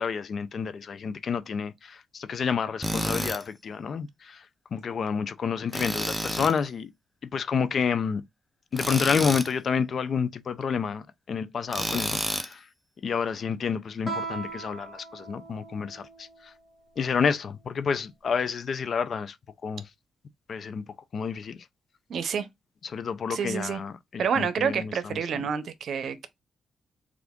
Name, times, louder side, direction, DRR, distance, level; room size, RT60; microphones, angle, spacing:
voice 1, 0.0-4.4 4.7-6.9 7.3-8.2 8.7-12.7 13.0-16.5 17.0-19.4 19.6-19.9 20.5-20.8 21.1-21.7 22.8-25.4, left 6 dB, 60° left, 0.5 m, -29 dB
Tools, 2.8-3.4 5.7-6.6 8.7-9.5 11.7-12.5, equal, ahead, 0.6 m, -30 dB
Guitar, 14.0-16.5, right 3 dB, 15° left, 2.2 m, -38 dB
voice 2, 22.1-22.5 23.3-23.8 24.2-26.3, right 7 dB, 70° right, 0.6 m, -28 dB
3.4 x 2.5 x 3.5 m
cardioid pair, 60°, 0 cm